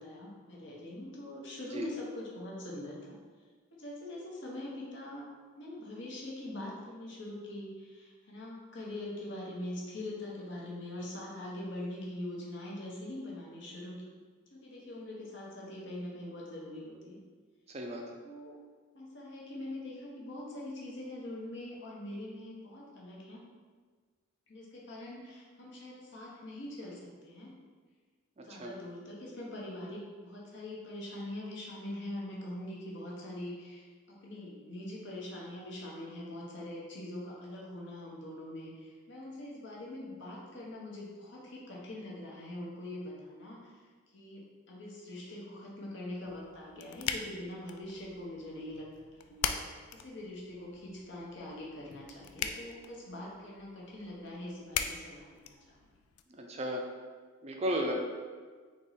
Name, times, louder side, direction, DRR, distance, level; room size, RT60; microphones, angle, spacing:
voice 1, 0.0-3.2 3.7-5.3 5.6-14.0 14.5-17.2 18.2-18.6 18.9-23.4 24.5-27.5 28.4-43.8 44.1-55.8, left 1 dB, 55° left, -4 dB, 0.9 m, -43 dB
sound 1, 46.3-56.2, left 8 dB, 90° left, 0.3 m, -41 dB
voice 2, 56.4-56.8 57.4-57.9, equal, 30° right, 1 dB, 0.4 m, -33 dB
3.6 x 3.0 x 4.1 m, 1.5 s
head